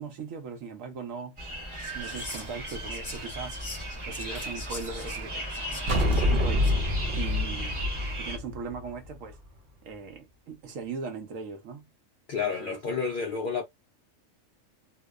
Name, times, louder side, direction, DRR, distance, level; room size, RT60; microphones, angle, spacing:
voice 1, 0.0-1.4 1.9-6.7 7.1-7.8 8.2-9.4 9.8-11.8 12.4-12.8, right 5 dB, 80° right, 1.1 m, -39 dB
sound 1, 1.4-8.4, right 1 dB, 25° right, 0.9 m, -37 dB
Whispering, 1.7-6.9, left 2 dB, 20° left, 1.0 m, -44 dB
sound 2, 5.9-9.3, left 1 dB, 55° right, 0.5 m, -26 dB
voice 2, 12.3-13.6, left 5 dB, 70° left, 0.5 m, -30 dB
2.7 x 2.0 x 2.3 m
omnidirectional pair, 1.4 m